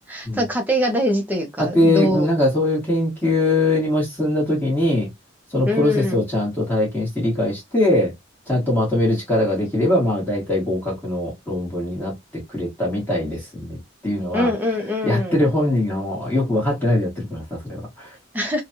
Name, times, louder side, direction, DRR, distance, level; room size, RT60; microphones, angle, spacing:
voice 1, 0.1-2.3 5.7-6.2 14.3-15.4 18.3-18.6, equal, 10° right, 0.8 m, -23 dB
voice 2, 1.6-5.1 5.5-8.1 8.5-12.1 12.5-14.5 15.0-18.1, left 1 dB, 10° left, 1.5 m, -21 dB
3.2 x 2.3 x 2.7 m
head